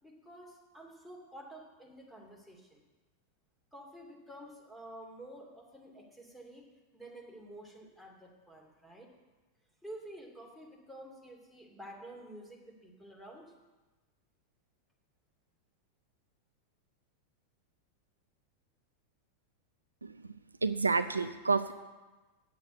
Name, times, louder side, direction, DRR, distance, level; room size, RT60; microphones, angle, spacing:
voice 1, 0.0-2.8 3.7-6.7 6.9-9.1 9.8-13.5, right 1 dB, ahead, -2 dB, 2.7 m, -50 dB
voice 2, 20.0-20.3 20.6-21.7, right 4 dB, 80° right, 11 dB, 0.4 m, -29 dB
8.8 x 8.1 x 8.2 m, 1.2 s
figure-of-eight pair, 90°, 0 cm